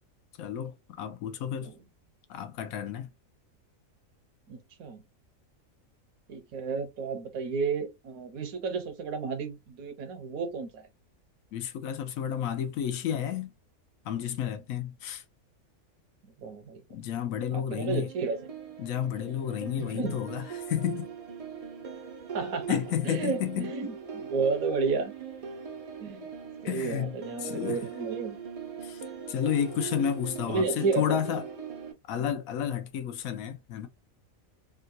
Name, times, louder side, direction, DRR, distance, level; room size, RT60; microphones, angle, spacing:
voice 1, 0.4-1.7 2.3-3.1 11.5-13.5 14.0-15.2 16.9-18.1 18.8-21.1 22.7-23.7 26.6-27.2 27.4-27.8 28.8-31.5 32.1-33.9, left 9 dB, 80° left, 1.0 m, -31 dB
voice 2, 4.5-5.0 6.3-10.9 16.4-16.8 17.5-18.4 19.8-20.2 22.3-22.8 23.0-25.1 26.0-26.3 26.6-28.4 30.5-31.2 32.1-32.3, right 4 dB, 85° right, 1.3 m, -32 dB
sound 1, 17.8-31.9, right 7 dB, 55° right, 0.4 m, -41 dB
3.6 x 2.3 x 2.6 m
omnidirectional pair, 1.5 m